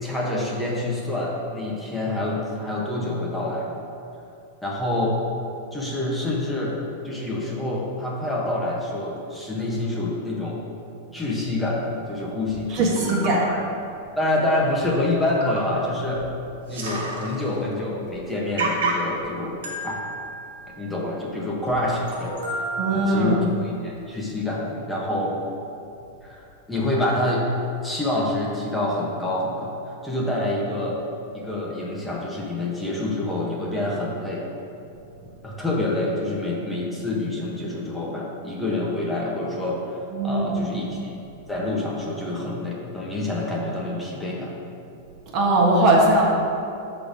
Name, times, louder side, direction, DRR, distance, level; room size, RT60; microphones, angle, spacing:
voice 1, 0.0-3.7 4.6-5.2 5.7-6.8 7.0-10.6 11.1-13.6 14.2-16.3 16.7-19.5 19.8-20.0 20.8-25.4 26.2-27.5 27.8-31.0 31.3-34.4 35.4-41.1 41.5-44.5, left 2 dB, 5° left, -4 dB, 1.2 m, -27 dB
sound 1, 12.5-12.6 13.0-13.3 14.3-14.4 14.8-14.9 15.3-15.8 16.1-16.2 16.5-17.6 18.0-18.1 18.6-19.2 19.6-21.2 21.7-21.8 22.1-23.4 24.0-24.1, right 3 dB, 70° right, 1.6 m, -31 dB
voice 2, 12.7-13.4 22.8-23.4 40.1-40.8 45.3-46.2, right 1 dB, 45° right, -3 dB, 1.4 m, -20 dB
6.6 x 4.1 x 5.0 m, 2.7 s
hypercardioid pair, 100°, 0 cm